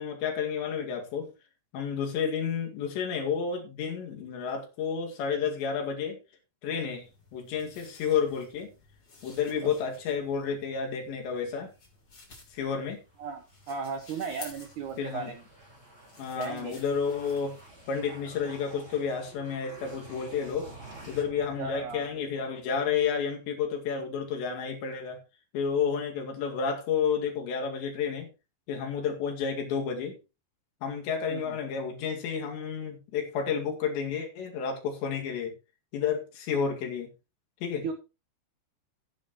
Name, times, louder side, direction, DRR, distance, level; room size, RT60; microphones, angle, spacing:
voice 1, 0.0-1.3 1.7-6.2 6.6-7.1 7.3-8.7 9.2-11.7 12.5-13.0 15.0-15.3 16.2-17.5 17.9-20.7 21.1-25.2 25.5-28.3 28.7-30.2 30.8-35.6 35.9-37.1 37.6-37.9, left 6 dB, 75° left, 2 dB, 4.3 m, -31 dB
sound 1, 6.9-18.7, left 3 dB, 25° left, 3.5 m, -53 dB
sound 2, 13.1-22.5, right 2 dB, 15° right, 4.2 m, -50 dB
voice 2, 13.2-15.4 16.3-16.8 21.6-22.1 31.3-31.6 37.8-37.9, right 5 dB, 85° right, 7 dB, 1.7 m, -36 dB
14.5 x 10.5 x 3.0 m, 0.29 s
omnidirectional pair, 5.2 m